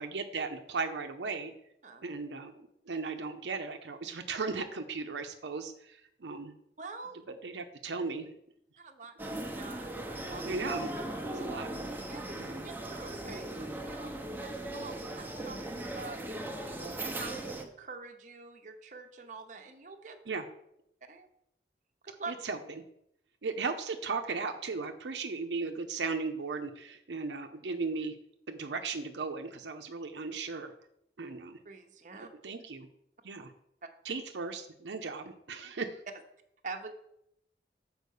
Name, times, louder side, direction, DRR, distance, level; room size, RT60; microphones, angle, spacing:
voice 1, 0.0-1.5 2.0-2.5 2.9-6.5 7.4-8.3 10.4-10.9 11.3-11.7 12.4-12.6 20.3-20.4 22.4-22.6 23.4-28.1 28.5-30.7 31.2-31.6 32.4-32.9 33.2-33.5 34.0-35.9, right 4 dB, 85° right, 6 dB, 0.7 m, -36 dB
voice 2, 6.8-7.2 8.8-10.4 12.1-14.1 14.4-20.2 21.1-21.3 22.0-22.3 31.6-32.3 36.6-36.9, right 4 dB, 45° right, 4 dB, 0.9 m, -46 dB
sound 1, 9.2-17.6, right 1 dB, 10° right, 0.8 m, -38 dB
6.8 x 4.6 x 6.5 m, 0.76 s
head